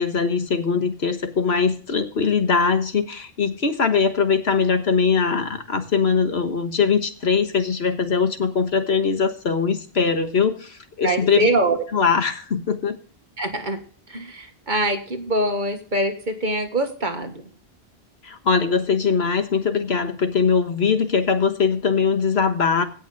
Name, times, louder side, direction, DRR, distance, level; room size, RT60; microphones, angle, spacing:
voice 1, 0.0-11.5 11.9-13.0 18.2-22.8, left 5 dB, 85° left, 7 dB, 1.6 m, -21 dB
voice 2, 11.0-11.8 13.4-13.8 14.1-17.4, right 1 dB, 50° right, 6 dB, 1.8 m, -24 dB
17.0 x 6.1 x 4.0 m, 0.41 s
omnidirectional pair, 1.0 m